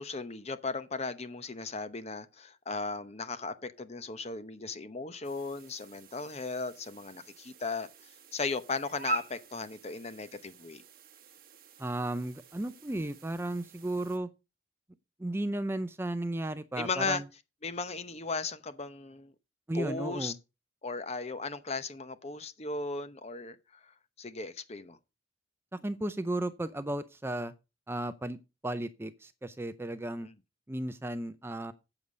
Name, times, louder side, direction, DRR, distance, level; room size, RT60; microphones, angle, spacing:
voice 1, 0.0-7.9 8.3-10.8 16.8-17.2 17.6-19.3 19.7-20.3 20.8-25.0, left 4 dB, 35° left, 0.9 m, -36 dB
sound 1, 5.2-14.2, right 2 dB, 50° right, 1.3 m, -44 dB
voice 2, 11.8-14.3 15.2-17.3 19.7-20.3 25.7-27.5 27.9-30.3 30.7-31.7, right 1 dB, 15° right, 0.5 m, -34 dB
8.1 x 7.1 x 5.0 m
head